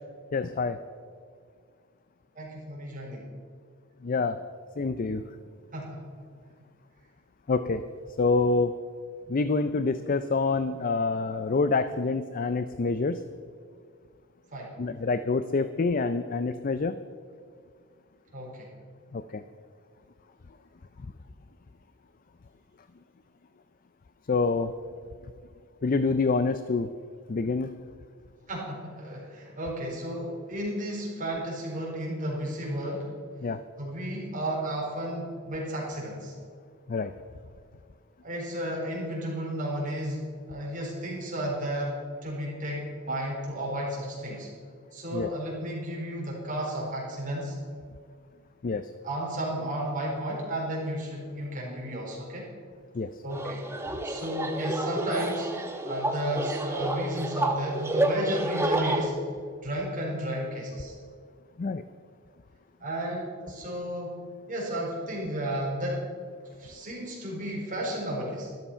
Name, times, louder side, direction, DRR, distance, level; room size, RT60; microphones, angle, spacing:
voice 1, 0.3-0.8 4.0-4.4 4.8-5.2 7.5-7.8 8.2-8.7 9.3-13.2 14.8-17.0 19.1-19.4 24.3-24.7 25.8-26.9 27.3-27.7 33.4-33.6 36.9-37.1 45.1-45.3 48.6-48.8 52.9-53.1 61.6-61.8, left 3 dB, 40° left, 12 dB, 0.4 m, -26 dB
voice 2, 2.3-3.2 5.7-6.0 14.5-14.7 18.3-18.7 28.5-33.1 33.8-36.3 38.2-44.5 44.9-47.6 49.0-52.5 53.2-53.6 54.0-55.5 55.8-59.1 59.6-61.0 62.8-64.2 64.5-66.0 66.6-68.5, right 1 dB, 40° right, -3 dB, 4.3 m, -33 dB
sound 1, 53.3-59.1, right 1 dB, 10° right, 1.0 m, -30 dB
13.0 x 12.5 x 5.6 m, 2.1 s
head